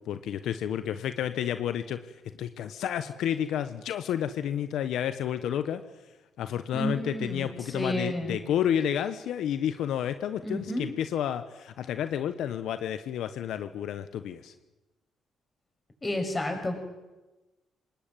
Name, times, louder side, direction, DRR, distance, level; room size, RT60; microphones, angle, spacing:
voice 1, 0.1-2.0 2.4-5.8 6.4-14.5, left 10 dB, 80° left, 10 dB, 1.1 m, -30 dB
voice 2, 6.7-8.4 10.4-10.9 16.0-16.7, left 1 dB, 20° left, 4 dB, 6.9 m, -31 dB
26.0 x 20.0 x 9.1 m, 1.1 s
cardioid pair, 90°, 0 cm